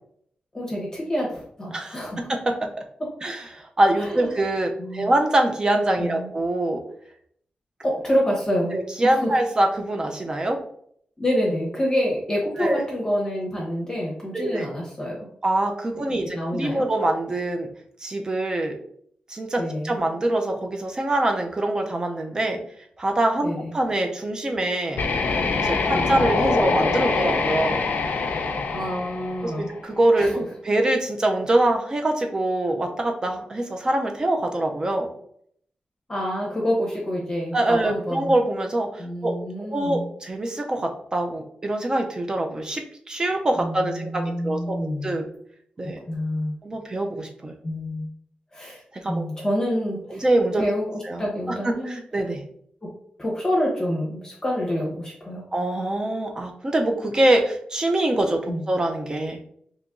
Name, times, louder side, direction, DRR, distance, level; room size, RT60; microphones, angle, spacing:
voice 1, 0.5-2.3 4.0-4.4 4.8-5.1 6.0-6.3 7.8-9.4 11.2-15.3 16.1-16.9 19.6-20.0 23.4-23.7 25.9-26.1 28.7-29.7 30.2-30.4 36.1-38.3 39.0-40.1 43.6-45.3 45.8-46.6 47.6-48.1 48.5-48.8 49.1-50.3 50.6-52.0 52.8-52.9 53.2-55.5 58.5-58.6, equal, 25° left, -3 dB, 0.8 m, -27 dB
voice 2, 2.3-2.7 3.2-6.8 8.7-10.6 12.6-12.8 14.3-14.7 15.4-17.7 18.0-18.7 19.3-22.6 23.0-25.0 25.6-27.8 29.4-30.4 30.6-35.1 37.5-45.2 45.8-46.0 46.6-47.6 48.9-49.3 50.1-50.6 51.1-51.2 51.6-52.4 55.5-59.4, right 1 dB, 25° right, 3 dB, 0.5 m, -24 dB
sound 1, 24.9-29.9, left 4 dB, 80° left, 0.4 m, -24 dB
2.9 x 2.5 x 3.5 m, 0.66 s
wide cardioid pair, 160°, 3 cm